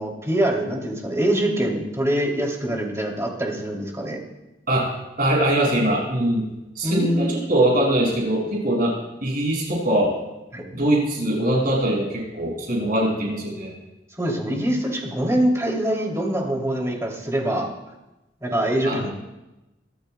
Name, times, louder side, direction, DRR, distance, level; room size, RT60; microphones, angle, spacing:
voice 1, 0.0-4.2 6.8-7.3 10.5-10.6 14.2-17.7 18.4-19.1, right 1 dB, 15° right, -1 dB, 2.9 m, -24 dB
voice 2, 5.2-6.4 6.8-8.9 9.2-10.1 10.7-13.7 18.8-19.0, right 1 dB, 55° right, -3 dB, 5.9 m, -22 dB
24.0 x 15.0 x 2.3 m, 1.0 s
head